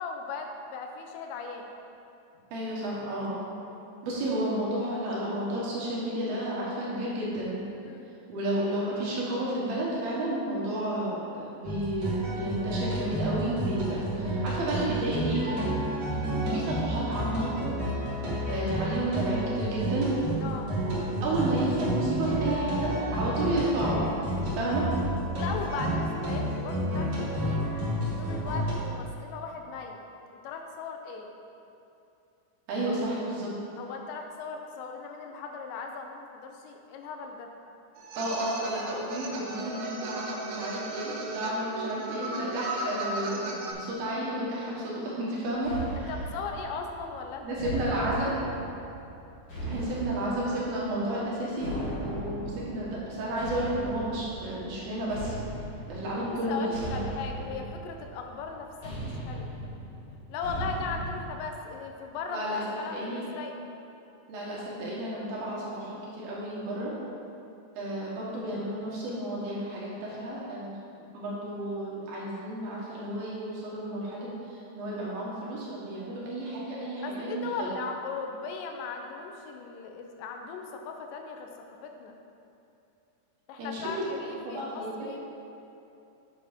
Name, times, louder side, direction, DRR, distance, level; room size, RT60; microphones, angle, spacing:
voice 1, 0.0-1.7 7.8-8.1 20.4-20.7 25.3-27.7 28.2-30.0 30.4-31.3 33.8-37.5 46.0-47.5 48.0-48.6 56.5-59.5 60.3-62.5 62.8-63.6 77.0-82.1 83.5-85.2, left 4 dB, 85° left, 3 dB, 2.9 m, -38 dB
voice 2, 2.5-3.5 4.0-7.6 8.3-15.8 16.3-17.5 18.5-20.1 21.2-24.0 24.6-24.8 32.7-33.5 38.2-46.1 47.4-48.4 49.6-51.7 52.0-55.3 55.9-57.0 57.5-57.6 62.3-63.2 64.3-66.9 67.7-77.7 83.6-84.0 84.4-84.9, right 1 dB, 65° right, -6 dB, 3.0 m, -32 dB
sound 1, 11.6-28.7, right 1 dB, 50° right, 1.6 m, -30 dB
sound 2, 38.0-43.7, right 2 dB, 80° right, 3.0 m, -36 dB
Slow Footsteps With Natural Reverb, 45.6-61.2, right 1 dB, 55° left, 1.1 m, -38 dB
7.7 x 7.4 x 3.6 m, 2.8 s
omnidirectional pair, 5.0 m